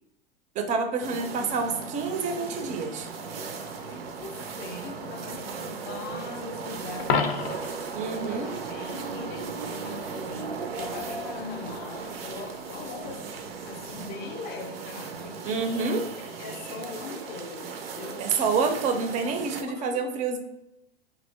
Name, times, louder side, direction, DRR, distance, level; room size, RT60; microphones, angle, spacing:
voice 1, 0.6-3.1 7.9-8.5 15.4-16.0 18.2-20.4, right 5 dB, 25° right, 6 dB, 0.4 m, -28 dB
sound 1, 1.0-19.6, right 5 dB, 75° right, 0.5 m, -37 dB
voice 2, 3.6-7.6 7.9-13.3 13.6-18.3 19.6-20.0, left 4 dB, 35° left, 5 dB, 0.5 m, -40 dB
Coin (dropping), 7.0-7.9 13.9-14.1, left 5 dB, 80° left, 0.5 m, -28 dB
3.1 x 2.4 x 3.4 m, 0.91 s
hypercardioid pair, 95°, 30 cm